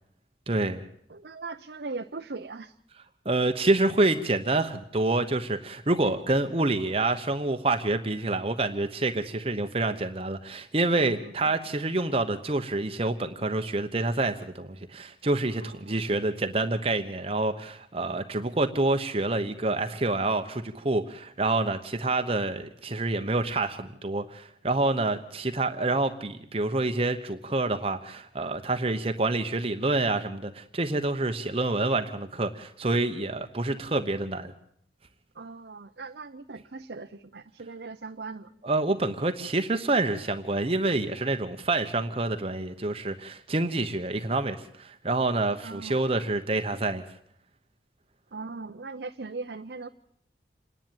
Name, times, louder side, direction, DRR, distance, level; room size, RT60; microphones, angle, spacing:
voice 1, 0.5-0.8 3.2-34.5 38.6-47.0, right 2 dB, 30° right, 6 dB, 1.0 m, -27 dB
voice 2, 1.1-2.8 11.0-11.6 15.6-16.0 35.3-38.5 45.6-46.0 48.3-49.9, right 3 dB, 65° right, 5 dB, 0.8 m, -39 dB
27.5 x 10.5 x 9.1 m, 0.70 s
head